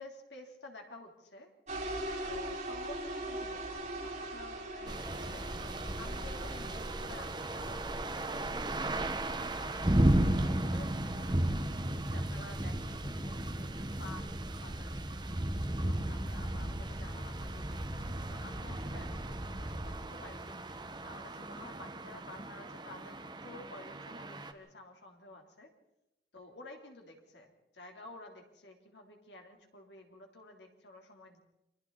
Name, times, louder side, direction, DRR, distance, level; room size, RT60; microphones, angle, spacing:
voice 1, 0.0-1.5 2.3-5.5 6.0-11.6 12.1-13.7 14.0-15.4 15.9-20.6 21.0-25.7 26.3-31.4, left 2 dB, 80° left, 3 dB, 3.6 m, -52 dB
sound 1, 1.7-8.4, right 1 dB, 40° right, 6.1 m, -41 dB
sound 2, 4.9-24.5, right 1 dB, 25° right, 1.5 m, -34 dB
29.5 x 25.0 x 4.2 m, 0.91 s
head